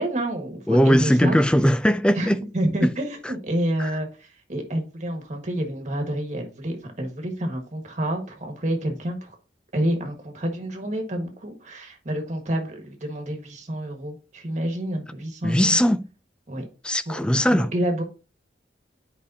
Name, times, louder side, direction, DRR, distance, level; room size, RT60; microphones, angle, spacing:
voice 1, 0.0-1.4 2.1-9.3 9.7-15.8 16.5-16.6 17.1-17.2 17.5-18.0, right 1 dB, 40° right, 1.6 m, -28 dB
voice 2, 0.7-2.4 3.8-3.9 15.4-16.0 16.8-17.7, equal, 5° left, 0.3 m, -19 dB
9.5 x 5.0 x 2.8 m
head